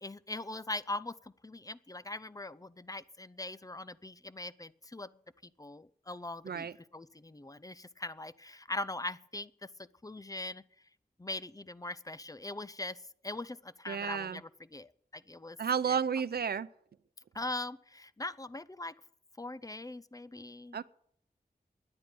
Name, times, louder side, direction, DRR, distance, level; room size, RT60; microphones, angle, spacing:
voice 1, 0.0-5.2 5.6-10.6 11.2-13.0 13.2-15.6 15.8-16.0 17.3-18.9 19.4-20.8, left 2 dB, 20° left, 17 dB, 0.7 m, -41 dB
voice 2, 13.9-14.4 15.6-16.7 20.7-20.8, right 7 dB, 80° right, 17 dB, 0.6 m, -32 dB
11.0 x 9.5 x 9.3 m, 0.67 s
cardioid pair, 45°, 16 cm